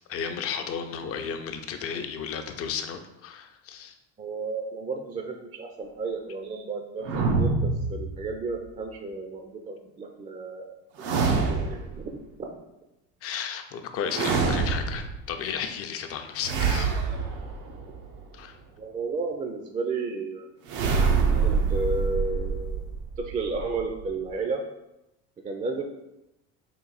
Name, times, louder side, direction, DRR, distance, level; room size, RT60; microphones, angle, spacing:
voice 1, 0.1-4.0 13.2-17.0 18.3-18.6, left 7 dB, 45° left, 6 dB, 0.5 m, -33 dB
voice 2, 4.2-12.6 18.8-20.5 21.4-22.8 23.3-24.6 25.4-25.8, right 3 dB, 20° right, 3 dB, 0.4 m, -33 dB
sound 1, 7.0-8.6 11.0-12.0 14.1-15.3 16.4-18.2 20.7-24.3, right 4 dB, 85° right, 0.7 m, -26 dB
3.9 x 2.5 x 4.0 m, 0.89 s
supercardioid pair, 100°, 33 cm